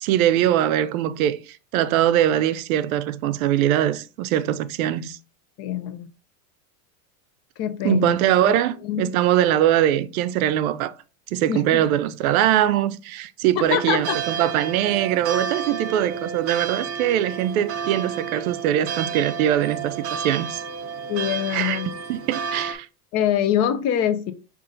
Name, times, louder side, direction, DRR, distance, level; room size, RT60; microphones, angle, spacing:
voice 1, 0.0-5.2 7.8-10.9 11.3-20.6 21.5-21.8 22.1-22.9, right 11 dB, 75° right, 0.6 m, -22 dB
voice 2, 5.6-6.1 7.6-8.2 8.5-8.6 8.8-9.1 11.5-11.9 13.6-14.2 21.1-21.9 23.1-24.3, left 10 dB, 35° left, 0.5 m, -24 dB
sound 1, 13.6-22.7, right 6 dB, 35° right, 0.7 m, -31 dB
5.3 x 2.5 x 3.8 m
supercardioid pair, 135°, 43 cm